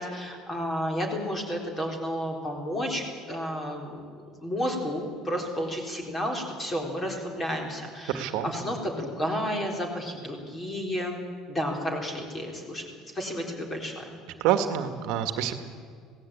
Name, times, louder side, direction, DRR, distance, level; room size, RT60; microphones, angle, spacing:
voice 1, 0.0-12.8 13.1-14.2, equal, 15° left, 2 dB, 3.9 m, -32 dB
voice 2, 8.1-8.5 14.4-15.5, right 10 dB, 65° right, 8 dB, 1.9 m, -26 dB
26.5 x 18.0 x 8.8 m, 2.1 s
cardioid pair, 175°, 0 cm